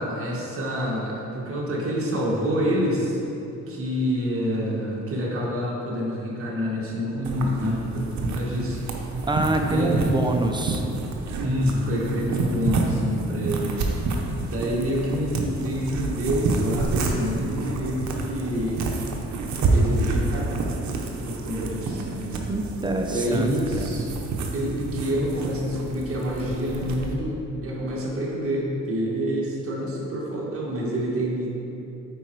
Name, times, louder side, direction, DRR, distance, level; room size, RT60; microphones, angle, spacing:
voice 1, 0.0-3.2 3.7-8.8 9.1-9.2 9.7-10.0 11.4-13.8 14.5-18.9 19.6-20.6 21.2-22.4 23.0-24.1 24.5-31.5, equal, 45° right, -3 dB, 1.7 m, -27 dB
sound 1, 7.2-27.2, right 3 dB, 65° right, 1.0 m, -29 dB
voice 2, 9.3-10.9 22.0-22.1 22.5-23.5 23.8-24.0, right 2 dB, 15° right, 4 dB, 0.7 m, -25 dB
8.8 x 4.4 x 4.7 m, 3.0 s
cardioid pair, 90°, 30 cm